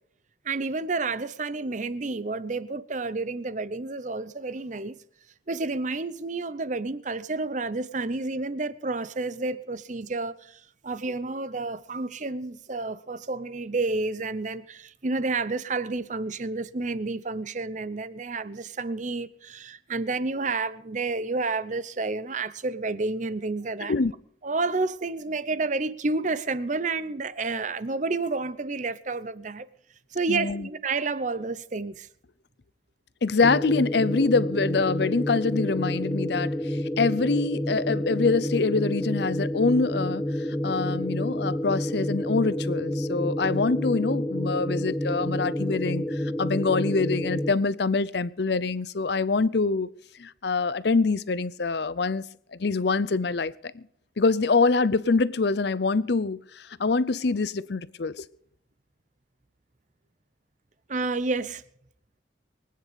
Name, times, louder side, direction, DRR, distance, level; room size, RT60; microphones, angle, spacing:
voice 1, 0.4-5.0 5.5-23.9 24.4-29.7 30.1-32.1 60.9-61.6, right 3 dB, 40° right, 0.7 m, -30 dB
voice 2, 30.3-30.7 33.2-40.2 40.6-49.9 50.2-52.2 52.5-53.8 54.2-58.3, left 4 dB, 55° left, 0.6 m, -25 dB
sound 1, 33.4-47.5, equal, 10° left, 0.6 m, -29 dB
23.5 x 9.6 x 5.2 m
head